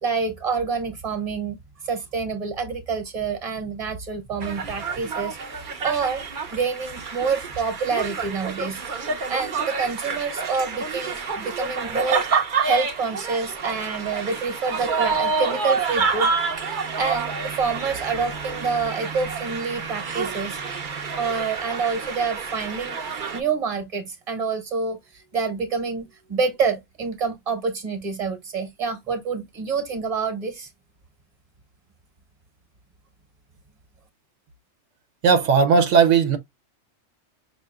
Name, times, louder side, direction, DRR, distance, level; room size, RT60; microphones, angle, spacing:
voice 1, 0.0-1.6 1.8-5.4 5.8-6.2 6.5-12.2 12.6-16.3 17.0-20.6 21.2-30.7, right 5 dB, 30° right, 1.2 m, -27 dB
sound 1, 4.4-23.4, right 5 dB, 50° right, 0.8 m, -28 dB
voice 2, 35.2-36.4, right 5 dB, 85° right, 1.1 m, -17 dB
5.5 x 2.9 x 2.2 m
omnidirectional pair, 1.2 m